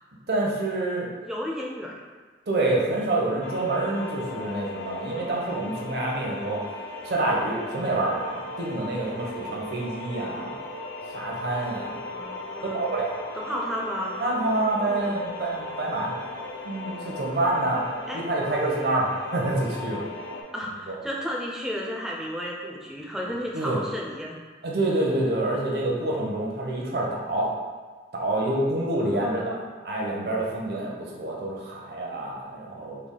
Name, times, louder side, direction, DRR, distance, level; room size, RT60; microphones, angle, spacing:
voice 1, 0.3-1.1 2.5-6.6 7.0-10.6 11.1-12.0 12.7-13.2 14.2-16.1 16.6-17.8 18.1-20.0 20.9-21.0 23.5-23.8 24.6-27.5 28.1-29.6 29.8-33.0, right 2 dB, 60° right, -2 dB, 0.6 m, -27 dB
voice 2, 1.2-1.9 12.1-12.8 13.3-14.2 14.9-15.2 18.1-18.2 20.5-24.4 29.0-29.6, equal, 5° right, -3 dB, 0.4 m, -33 dB
sound 1, 3.4-20.4, left 2 dB, 65° left, 0.4 m, -37 dB
3.3 x 2.3 x 3.6 m, 1.4 s
head